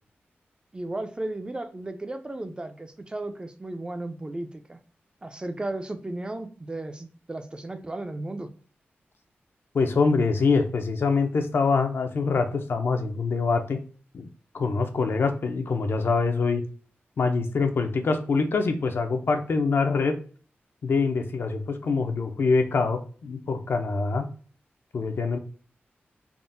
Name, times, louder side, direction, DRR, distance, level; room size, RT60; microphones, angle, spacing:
voice 1, 0.7-4.8 5.2-8.5, right 2 dB, 25° right, 8 dB, 0.3 m, -35 dB
voice 2, 9.7-13.8 14.1-14.3 14.5-16.6 17.2-20.2 20.8-24.3 24.9-25.4, left 4 dB, 65° left, 6 dB, 0.4 m, -24 dB
3.5 x 2.0 x 2.5 m, 0.42 s
wide cardioid pair, 85°, 4 cm